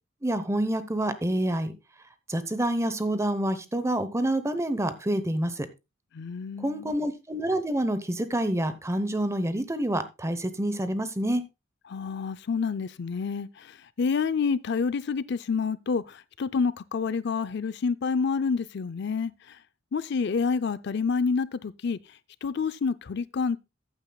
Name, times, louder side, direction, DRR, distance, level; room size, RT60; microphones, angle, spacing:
voice 1, 0.2-1.7 2.3-5.7 6.6-11.4, right 1 dB, 15° right, 0.9 m, -27 dB
voice 2, 6.1-6.9 11.9-19.6 19.9-22.0 22.4-23.6, left 5 dB, 60° left, 0.5 m, -28 dB
14.5 x 9.0 x 2.3 m
head